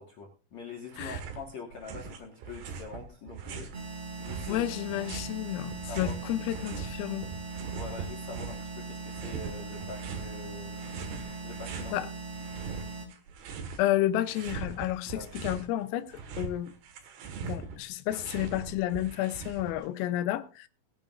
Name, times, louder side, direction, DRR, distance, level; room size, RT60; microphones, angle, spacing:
voice 1, 0.0-3.7 4.2-4.7 5.9-6.1 7.7-10.9 11.4-12.0 12.6-12.8 15.1-15.3, left 4 dB, 65° left, 1.8 m, -44 dB
sound 1, 0.9-1.4 1.7-3.8 4.2-6.9 7.2-8.7 9.1-10.3 10.8-11.9 12.3-13.9 14.2-15.7 16.0-19.9, right 6 dB, 65° right, 3.4 m, -41 dB
sound 2, 3.7-13.1, right 3 dB, 35° right, 3.9 m, -40 dB
voice 2, 4.5-7.3 11.9-12.1 13.8-16.7 17.4-20.7, left 14 dB, 85° left, 3.5 m, -31 dB
20.5 x 10.0 x 2.5 m
omnidirectional pair, 5.9 m